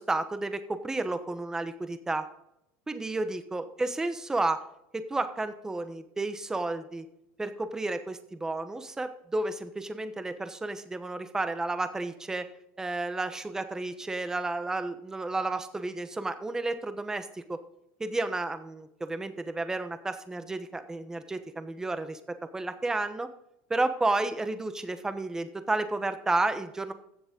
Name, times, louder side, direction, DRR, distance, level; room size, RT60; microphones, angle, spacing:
voice 1, 0.0-2.2 2.9-4.6 4.9-7.1 7.4-12.4 12.8-17.6 18.0-22.2 22.5-23.3 23.7-26.9, right 2 dB, 10° right, 10 dB, 1.0 m, -31 dB
15.0 x 7.1 x 3.7 m, 0.80 s
supercardioid pair, 135°, 5 cm